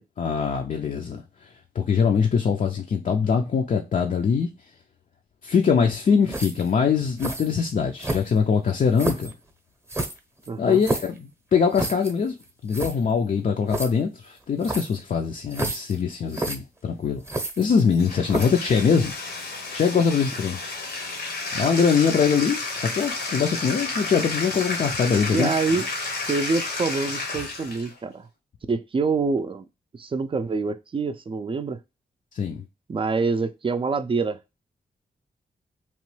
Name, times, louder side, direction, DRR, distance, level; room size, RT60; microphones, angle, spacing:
voice 1, 0.2-1.5 1.8-4.5 5.4-9.3 10.6-12.3 12.6-17.2 17.6-19.1 19.7-20.6 21.5-25.6 32.3-32.6, left 6 dB, 55° left, 0.4 m, -23 dB
sound 1, 6.3-6.7 7.2-7.5 8.0-8.5 9.0-9.3 9.9-11.2 11.7-12.1 12.4-12.5 12.7-13.0 13.7-13.9 14.6-15.0 15.5-16.0 16.3-16.6 17.2-17.9 18.3-18.6, right 2 dB, 15° right, 0.8 m, -29 dB
voice 2, 10.5-10.8 25.1-25.9 26.3-28.3 28.7-29.7 29.9-31.8 32.9-34.4, right 4 dB, 35° right, 0.4 m, -26 dB
Bathtub (filling or washing), 17.9-27.9, left 3 dB, 85° left, 1.0 m, -31 dB
3.0 x 2.2 x 3.1 m
cardioid pair, 70°, 16 cm